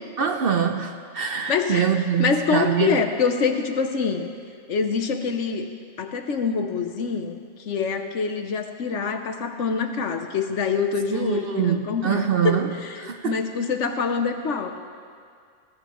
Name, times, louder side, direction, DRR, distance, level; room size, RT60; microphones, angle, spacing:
voice 1, 0.2-3.0 11.1-12.7 13.0-13.4, right 8 dB, 55° right, 6 dB, 0.8 m, -24 dB
voice 2, 1.5-1.9 2.2-4.3 4.7-5.7 6.0-14.7, left 5 dB, 65° left, 6 dB, 1.2 m, -25 dB
20.5 x 16.0 x 3.1 m, 2.2 s
omnidirectional pair, 1.4 m